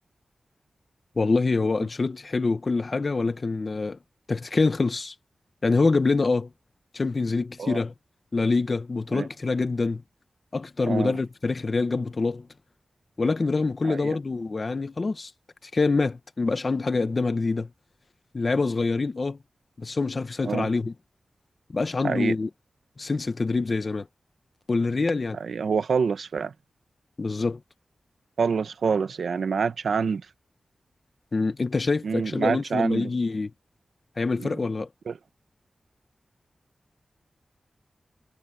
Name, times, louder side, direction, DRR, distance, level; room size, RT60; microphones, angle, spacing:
voice 1, 1.2-4.0 4.3-5.1 5.6-6.5 6.9-7.9 8.3-10.0 10.5-12.5 13.2-15.3 15.7-17.7 18.3-19.4 19.8-20.9 21.7-22.5 23.0-24.1 24.7-25.4 25.7-25.8 27.2-27.6 31.3-33.5 34.2-34.9, left 3 dB, 40° left, 1.3 m, -25 dB
voice 2, 10.8-11.1 13.8-14.2 20.4-20.7 22.0-22.3 25.4-26.5 28.4-30.2 32.0-33.1 34.4-34.6 35.1-35.2, right 5 dB, 85° right, 1.1 m, -26 dB
wide cardioid pair, 145°, 0 cm